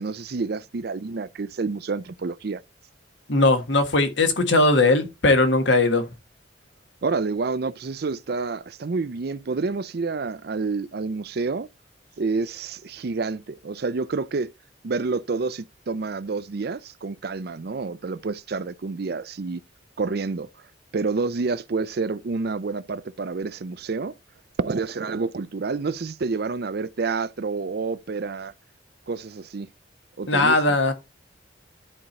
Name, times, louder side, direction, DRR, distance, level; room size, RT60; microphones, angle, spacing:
voice 1, 0.0-2.6 7.0-11.7 12.2-14.5 14.8-19.6 20.0-20.5 20.9-24.1 24.6-28.5 29.1-29.7 30.2-30.8, right 4 dB, 55° right, 0.5 m, -28 dB
voice 2, 3.3-6.1 30.3-30.9, left 2 dB, 70° left, 1.6 m, -19 dB
11.0 x 4.5 x 4.0 m
head